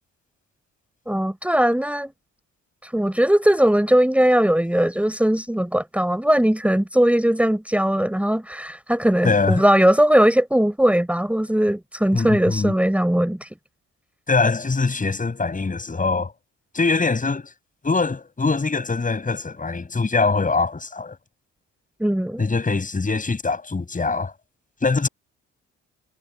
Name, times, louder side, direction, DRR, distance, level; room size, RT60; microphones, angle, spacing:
voice 1, 1.1-2.1 2.8-13.5 22.0-22.4, right 1 dB, 5° right, 4.9 m, -19 dB
voice 2, 9.2-9.6 12.1-12.7 14.3-16.3 16.7-17.5 17.8-21.2 22.4-24.3 24.8-25.1, left 4 dB, 25° left, 6.9 m, -23 dB
cardioid pair, 90°, 30 cm